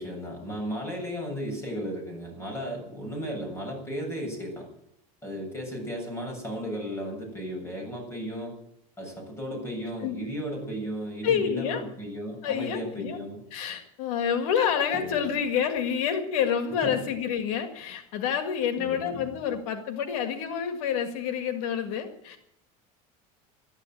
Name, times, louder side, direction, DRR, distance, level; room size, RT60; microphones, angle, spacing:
voice 1, 0.0-4.7 5.2-8.5 9.0-13.4 14.9-15.2 16.8-17.0 18.8-19.3, equal, 15° left, 1 dB, 7.5 m, -35 dB
voice 2, 11.2-11.8 12.4-13.2 13.5-22.4, left 8 dB, 80° left, 7 dB, 1.9 m, -28 dB
13.0 x 11.0 x 9.0 m, 0.77 s
supercardioid pair, 130°, 18 cm